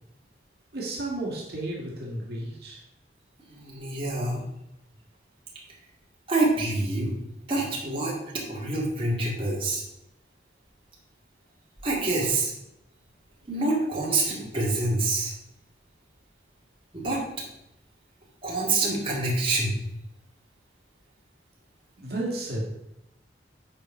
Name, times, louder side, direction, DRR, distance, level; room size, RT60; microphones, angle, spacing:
voice 1, 0.7-2.8 22.0-22.7, right 1 dB, 60° right, -3 dB, 2.0 m, -32 dB
voice 2, 3.5-4.4 6.3-7.1 7.5-8.1 8.5-9.8 11.8-12.5 13.5-15.3 16.9-17.2 18.4-19.8, right 2 dB, 30° right, -4 dB, 2.2 m, -26 dB
8.7 x 4.5 x 5.5 m, 0.85 s
head